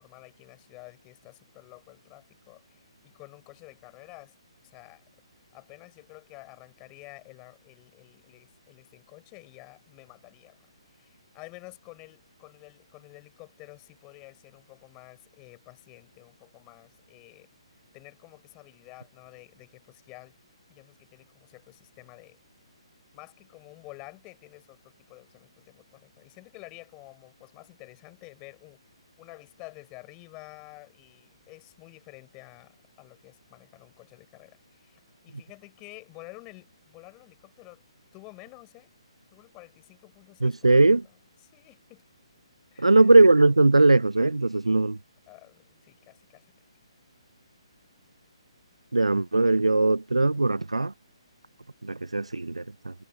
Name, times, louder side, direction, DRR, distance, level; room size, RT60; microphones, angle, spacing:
voice 1, 0.0-4.4 4.6-5.0 5.5-20.3 20.7-22.4 23.1-28.8 29.2-37.8 38.1-38.9 39.3-42.0 42.7-43.1 45.3-46.5, left 26 dB, 25° left, 7.6 m, -50 dB
voice 2, 40.4-41.0 42.8-45.0 48.9-50.9 51.8-52.9, right 2 dB, 90° right, 0.4 m, -20 dB
figure-of-eight pair, 135°, 3 cm